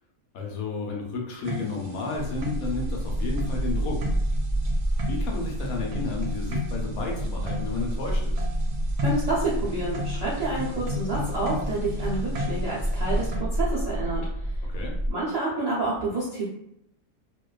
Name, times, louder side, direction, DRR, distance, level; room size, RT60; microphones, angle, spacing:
voice 1, 0.3-4.1 5.1-8.4 14.7-14.9, left 3 dB, 75° left, 0 dB, 1.0 m, -32 dB
sound 1, 1.4-13.4, left 2 dB, 90° right, 1.1 m, -35 dB
sound 2, 2.1-15.1, right 1 dB, 45° left, 0.6 m, -29 dB
voice 2, 9.0-14.7 15.1-16.4, right 2 dB, 70° right, -9 dB, 0.3 m, -29 dB
2.5 x 2.2 x 2.3 m, 0.77 s
omnidirectional pair, 1.6 m